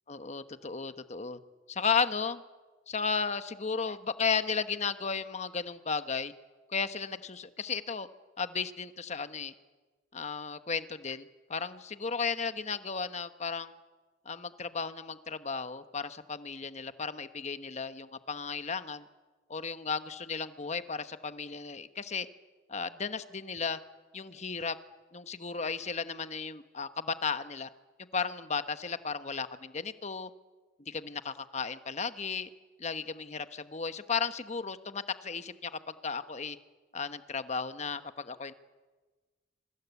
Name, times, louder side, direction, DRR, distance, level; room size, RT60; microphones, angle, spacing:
voice 1, 0.1-1.4 1.7-2.4 2.9-6.3 6.7-8.1 8.4-9.5 10.1-13.7 14.2-19.1 19.5-22.3 22.7-23.8 24.1-24.8 25.1-27.7 28.1-30.3 30.8-32.5 32.8-36.6 36.9-38.5, left 5 dB, 35° left, 10 dB, 1.1 m, -34 dB
26.5 x 24.5 x 8.3 m, 1.3 s
head